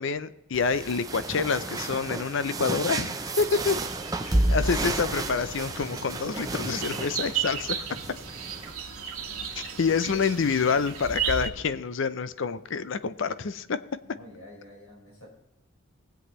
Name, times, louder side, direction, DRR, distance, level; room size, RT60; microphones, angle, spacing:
voice 1, 0.0-3.8 4.3-7.8 9.6-13.8, left 5 dB, 60° left, 14 dB, 0.5 m, -27 dB
sound 1, 0.5-8.7, right 2 dB, 15° right, 0.6 m, -31 dB
sound 2, 3.4-11.5, right 7 dB, 85° right, 1.5 m, -35 dB
sound 3, 5.6-11.4, left 1 dB, 25° left, 3.3 m, -54 dB
voice 2, 9.2-10.8 14.0-15.3, left 1 dB, 75° left, -3 dB, 4.8 m, -50 dB
19.5 x 8.0 x 3.1 m, 0.89 s
head